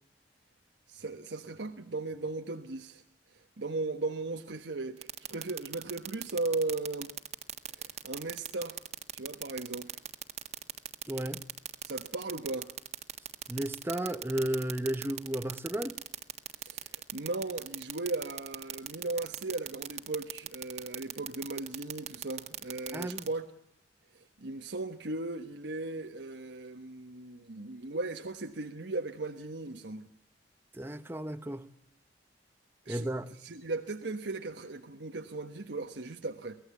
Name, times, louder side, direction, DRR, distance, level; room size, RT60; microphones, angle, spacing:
voice 1, 0.9-3.0 3.3-7.1 7.7-8.8 9.1-10.0 11.8-12.7 16.6-23.5 24.1-30.0 32.8-33.1 33.4-36.6, right 2 dB, 85° right, 1.3 m, -37 dB
sound 1, 5.0-23.3, right 9 dB, 40° right, 1.8 m, -38 dB
voice 2, 11.1-11.4 13.5-16.0 22.9-23.3 30.7-31.6 32.9-33.3, right 1 dB, 15° right, 0.9 m, -33 dB
24.5 x 17.0 x 8.4 m
head